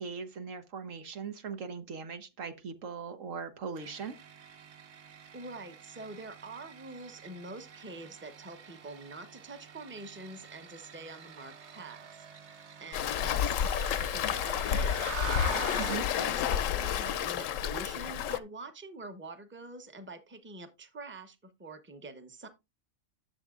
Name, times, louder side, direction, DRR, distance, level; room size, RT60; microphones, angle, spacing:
voice 1, 0.0-4.2 15.8-16.0, right 6 dB, 85° right, 1.4 m, -39 dB
sound 1, 3.8-16.1, right 6 dB, 65° right, 1.2 m, -45 dB
voice 2, 5.3-12.2 12.8-15.1 15.8-22.5, right 3 dB, 10° right, 0.8 m, -45 dB
Waves surf, 12.9-18.4, left 9 dB, 85° left, 1.0 m, -30 dB
11.5 x 6.9 x 2.4 m
omnidirectional pair, 1.3 m